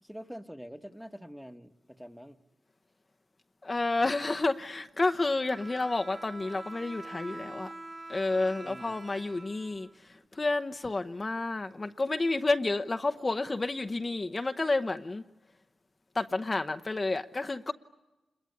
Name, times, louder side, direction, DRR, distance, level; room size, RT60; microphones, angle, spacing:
voice 1, 0.0-2.4 8.6-9.0, equal, 5° right, 1.4 m, -45 dB
voice 2, 3.6-7.7 8.1-15.2 16.1-17.7, left 2 dB, 35° left, 0.9 m, -30 dB
Bowed string instrument, 5.2-10.3, right 2 dB, 40° right, 1.5 m, -45 dB
27.0 x 22.0 x 9.7 m
cardioid pair, 60°, 0 cm